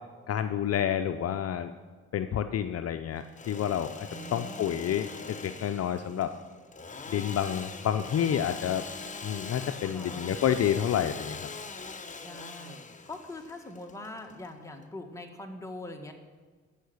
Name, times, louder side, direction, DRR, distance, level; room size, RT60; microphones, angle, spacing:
voice 1, 0.3-1.7 2.1-6.3 7.1-8.8 9.2-11.4, left 9 dB, 55° left, 8 dB, 0.6 m, -29 dB
Engine / Sawing, 3.2-14.8, left 4 dB, 25° left, 1.0 m, -42 dB
voice 2, 4.1-4.7 9.8-10.3 12.2-16.1, left 1 dB, 10° left, 2 dB, 1.7 m, -43 dB
13.0 x 5.7 x 8.1 m, 1.5 s
cardioid pair, 90°, 30 cm